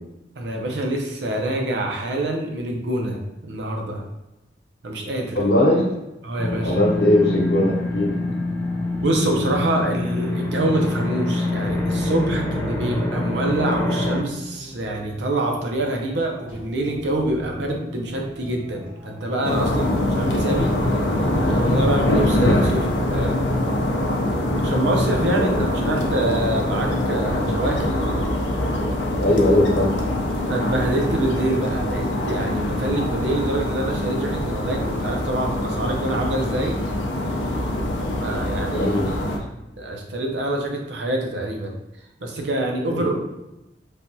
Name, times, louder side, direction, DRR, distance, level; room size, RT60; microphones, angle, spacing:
voice 1, 0.4-4.0 4.8-5.4 6.2-6.8 9.0-20.8 21.4-23.4 24.6-27.9 30.5-36.8 38.2-38.9 39.8-41.7 42.2-43.2, right 1 dB, 80° right, 1 dB, 0.6 m, -26 dB
voice 2, 5.3-5.9 6.6-8.1 25.3-25.6 29.2-29.9 38.7-39.2, left 1 dB, 65° left, -3 dB, 0.8 m, -19 dB
sound 1, 6.4-14.2, left 2 dB, 10° left, 0.4 m, -25 dB
sound 2, 9.2-22.5, equal, 50° right, 0.9 m, -40 dB
sound 3, 19.4-39.4, left 1 dB, 90° left, 0.4 m, -23 dB
3.3 x 2.2 x 2.7 m, 0.95 s
head